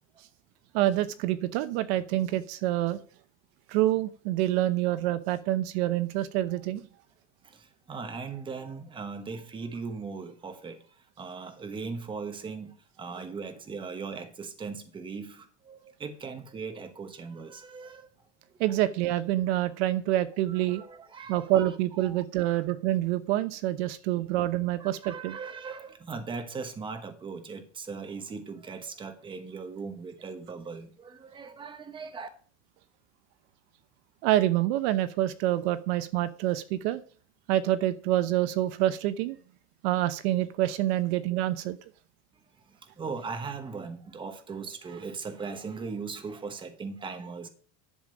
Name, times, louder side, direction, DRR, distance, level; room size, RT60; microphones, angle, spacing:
voice 1, 0.7-3.0 3.7-6.9 18.6-20.8 21.3-25.4 34.2-37.0 37.5-39.4 39.8-41.8, right 14 dB, 60° right, 0.8 m, -27 dB
voice 2, 7.4-18.1 18.5-18.6 20.5-21.7 22.0-22.6 24.2-24.3 24.8-32.3 42.7-47.5, right 4 dB, 15° right, 1.1 m, -39 dB
11.0 x 7.6 x 5.1 m
cardioid pair, 170°, 36 cm